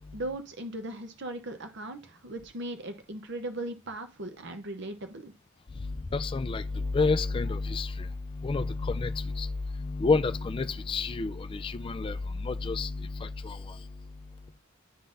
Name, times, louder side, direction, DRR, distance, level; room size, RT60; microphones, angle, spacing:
voice 1, 0.1-5.3, right 1 dB, 55° right, 0.8 m, -38 dB
voice 2, 5.7-14.2, left 3 dB, 25° left, 0.3 m, -30 dB
11.0 x 3.8 x 2.6 m
head